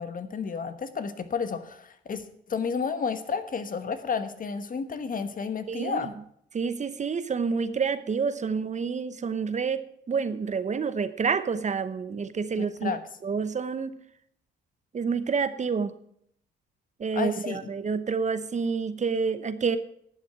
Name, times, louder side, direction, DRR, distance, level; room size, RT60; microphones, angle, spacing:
voice 1, 0.0-6.1 12.6-13.0 17.1-17.7, left 5 dB, 45° left, 11 dB, 1.2 m, -31 dB
voice 2, 5.7-6.1 6.5-12.9 13.2-14.0 14.9-15.9 17.0-19.8, right 5 dB, 35° right, 13 dB, 0.8 m, -28 dB
11.5 x 7.3 x 7.6 m, 0.69 s
cardioid pair, 90°, 20 cm